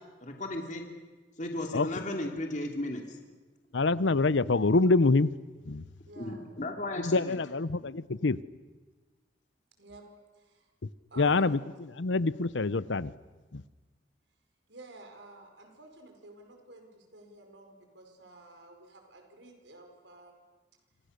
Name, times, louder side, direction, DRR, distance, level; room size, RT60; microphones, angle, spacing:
voice 1, 0.2-0.8 1.4-3.2 6.2-7.4 7.8-7.9, left 1 dB, 40° left, 2.8 m, -35 dB
voice 2, 3.7-5.3 5.7-5.8 6.6-6.7 7.0-8.4 11.2-13.1 13.5-13.6, left 3 dB, 85° left, 0.8 m, -26 dB
voice 3, 6.1-6.5 9.8-10.0 10.3-10.7 11.1-11.6 14.7-20.3, right 2 dB, 80° right, 4.9 m, -51 dB
29.0 x 26.5 x 6.7 m
head